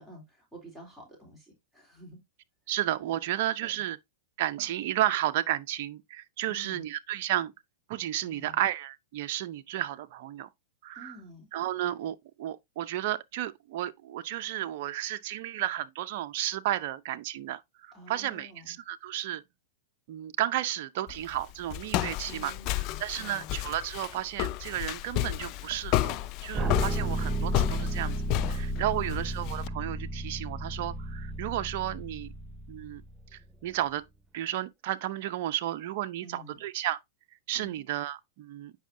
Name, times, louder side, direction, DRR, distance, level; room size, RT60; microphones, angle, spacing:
voice 1, 0.0-2.2 3.6-3.8 6.5-6.9 8.2-8.6 11.0-11.5 17.9-18.8 22.3-23.5 28.9-29.2 36.2-36.6 37.5-37.8, equal, 5° left, 3.4 m, -49 dB
voice 2, 2.7-4.0 4.4-7.5 7.9-10.5 10.8-11.2 11.5-19.4 20.1-22.5 23.0-28.1 28.5-32.3 32.7-33.0 33.3-34.0 34.3-37.0 37.5-38.7, right 13 dB, 55° right, 0.6 m, -32 dB
Walk footsteps, 21.1-29.7, left 16 dB, 45° left, 0.4 m, -32 dB
sound 1, 26.5-33.5, right 1 dB, 10° right, 0.7 m, -33 dB
9.1 x 5.5 x 2.7 m
hypercardioid pair, 105°, 0 cm